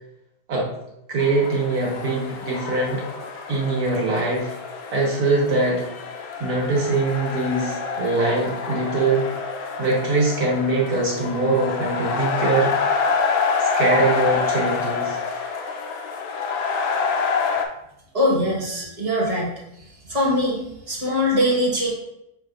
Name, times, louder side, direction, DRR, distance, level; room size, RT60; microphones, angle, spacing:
voice 1, 1.1-3.0 3.5-4.5 4.9-5.8 6.4-9.2 9.8-12.7 13.8-15.2, right 3 dB, 70° right, -4 dB, 1.8 m, -22 dB
sound 1, 1.2-17.7, left 5 dB, 70° left, 1.0 m, -27 dB
voice 2, 18.1-19.5 20.1-21.9, left 1 dB, 25° right, -4 dB, 1.2 m, -22 dB
6.2 x 3.4 x 2.4 m, 0.83 s
omnidirectional pair, 1.7 m